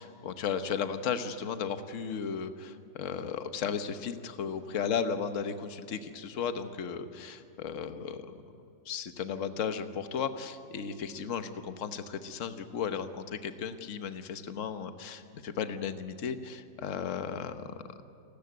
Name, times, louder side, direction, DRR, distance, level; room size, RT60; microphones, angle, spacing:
voice 1, 0.0-8.3 8.8-18.0, left 7 dB, 50° left, 9 dB, 1.3 m, -35 dB
28.5 x 13.5 x 9.4 m, 2.6 s
omnidirectional pair, 1.9 m